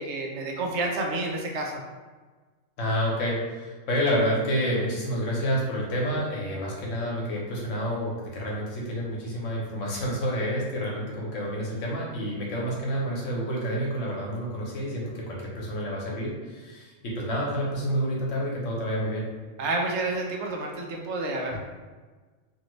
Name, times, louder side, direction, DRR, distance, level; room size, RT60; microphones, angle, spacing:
voice 1, 0.0-1.8 19.6-21.6, right 2 dB, 70° right, 0 dB, 0.8 m, -29 dB
voice 2, 2.8-19.2, equal, 80° left, -3 dB, 1.2 m, -29 dB
2.8 x 2.7 x 3.0 m, 1.4 s
omnidirectional pair, 1.3 m